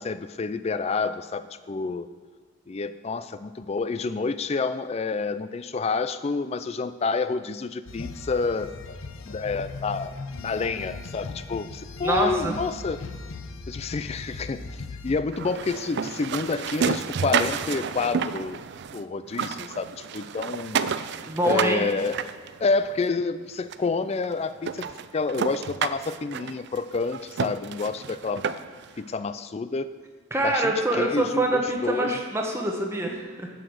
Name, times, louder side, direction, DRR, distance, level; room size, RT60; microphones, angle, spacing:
voice 1, 0.0-2.1 2.7-8.7 9.3-13.0 13.7-14.6 15.0-18.6 18.9-20.9 21.4-22.3 22.6-28.4 29.0-29.9 30.4-32.1, left 4 dB, 30° left, 13 dB, 0.3 m, -29 dB
sound 1, 7.9-15.2, left 3 dB, 70° left, 0.6 m, -38 dB
voice 2, 12.0-12.6 21.2-21.8 30.3-33.5, right 1 dB, 10° right, 1 dB, 1.1 m, -25 dB
sound 2, 15.3-19.0 19.3-23.0 23.7-23.8 24.2-24.3 24.6-28.9, right 6 dB, 55° right, 0.3 m, -30 dB
7.6 x 6.9 x 6.3 m, 1.4 s
head